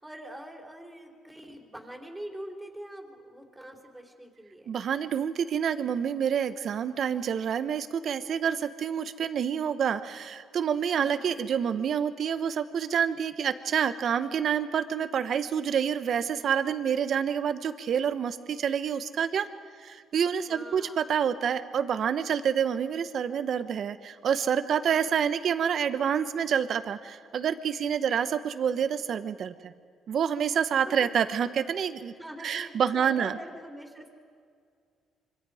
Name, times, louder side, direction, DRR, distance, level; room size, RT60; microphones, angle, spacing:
voice 1, 0.0-4.7 10.9-11.4 20.5-21.0 24.9-25.1 28.0-28.2 30.9-31.1 32.2-34.1, right 1 dB, 10° right, 2 dB, 3.7 m, -44 dB
voice 2, 4.7-19.5 19.8-29.7 30.1-32.1 32.4-33.4, right 8 dB, 55° right, 11 dB, 1.2 m, -28 dB
26.0 x 25.0 x 5.0 m, 2.1 s
cardioid pair, 110°, 0 cm